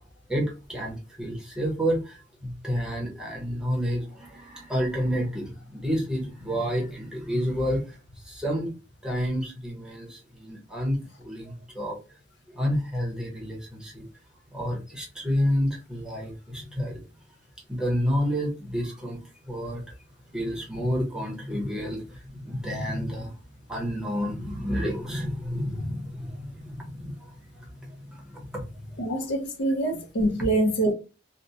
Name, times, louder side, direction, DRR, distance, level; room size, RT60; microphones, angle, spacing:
voice 1, 0.3-8.7 9.0-12.0 12.5-14.1 14.5-17.0 17.7-20.0 20.3-23.4 23.7-29.0, equal, 5° right, 0.8 m, -30 dB
voice 2, 29.0-30.9, right 1 dB, 60° left, 0.6 m, -25 dB
2.8 x 2.1 x 2.6 m
head